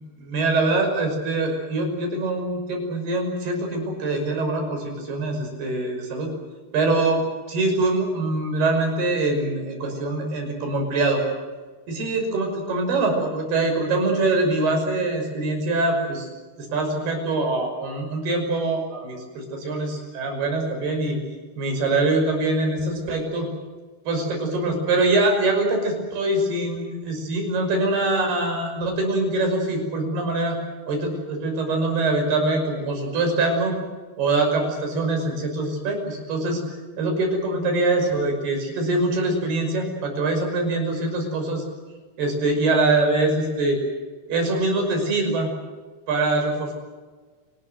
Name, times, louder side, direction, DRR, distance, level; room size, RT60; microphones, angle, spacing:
voice 1, 0.2-6.3 6.7-7.2 7.5-11.2 11.9-16.3 16.6-21.2 21.6-23.5 24.1-30.6 30.9-33.7 34.2-36.6 37.0-41.6 42.2-43.8 44.3-45.5 46.1-46.7, right 2 dB, 75° right, 3 dB, 7.9 m, -23 dB
28.5 x 20.0 x 7.9 m, 1.4 s
omnidirectional pair, 4.6 m